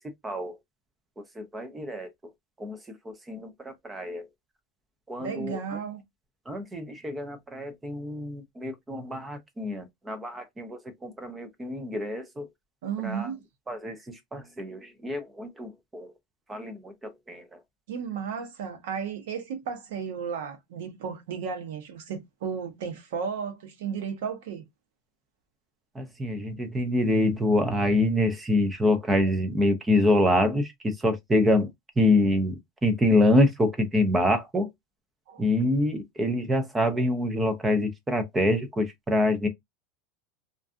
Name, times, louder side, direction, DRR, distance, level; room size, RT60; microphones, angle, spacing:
voice 1, 0.2-0.5 1.4-2.1 2.6-2.8 3.1-4.3 5.1-5.8 6.5-12.5 13.0-13.3 13.7-16.1 16.5-17.5 26.0-31.7 32.0-34.7 35.4-39.5, left 1 dB, 10° right, 0.4 m, -26 dB
voice 2, 5.2-6.0 12.8-13.4 17.9-24.6 35.3-35.4, right 6 dB, 75° right, 0.9 m, -34 dB
2.5 x 2.4 x 2.3 m
supercardioid pair, 180°, 0 cm